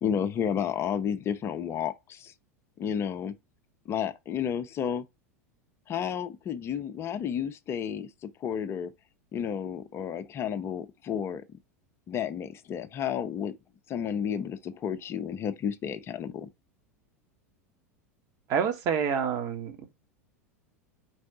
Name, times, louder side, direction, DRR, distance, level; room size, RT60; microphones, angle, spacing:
voice 1, 0.0-2.3 2.8-3.3 3.9-5.1 5.9-8.9 9.3-11.4 12.1-13.5 13.9-16.5, left 8 dB, 30° left, 0.6 m, -31 dB
voice 2, 18.5-19.9, right 7 dB, 40° right, 1.3 m, -28 dB
4.7 x 4.3 x 4.8 m
figure-of-eight pair, 85°, 8 cm